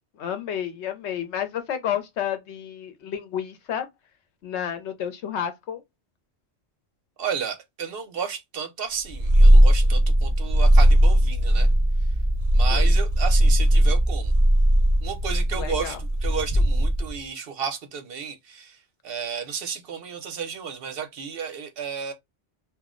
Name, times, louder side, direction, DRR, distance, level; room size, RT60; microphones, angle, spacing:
voice 1, 0.2-3.9 4.4-5.8 12.7-12.9 15.5-16.0, left 9 dB, 85° left, 1.0 m, -31 dB
voice 2, 7.2-11.7 12.5-14.3 15.0-18.8 19.0-22.1, right 7 dB, 65° right, 0.8 m, -32 dB
Purr, 9.1-17.2, right 1 dB, 35° left, 0.9 m, -18 dB
2.3 x 2.0 x 3.6 m
omnidirectional pair, 1.1 m